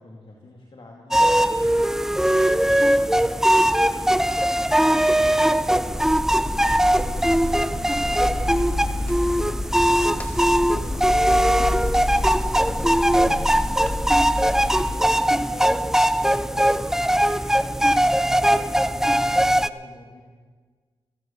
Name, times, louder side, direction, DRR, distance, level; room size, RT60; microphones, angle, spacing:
voice 1, 0.0-3.9 4.7-6.6 7.3-13.4 14.4-17.4 17.9-20.2, left 2 dB, 55° left, -1 dB, 2.4 m, -45 dB
sound 1, 1.1-19.7, right 1 dB, 5° right, 0.5 m, -20 dB
sound 2, 5.8-15.1, left 1 dB, 15° left, 1.9 m, -29 dB
15.5 x 14.5 x 5.5 m, 1.5 s
cardioid pair, 50°, 11 cm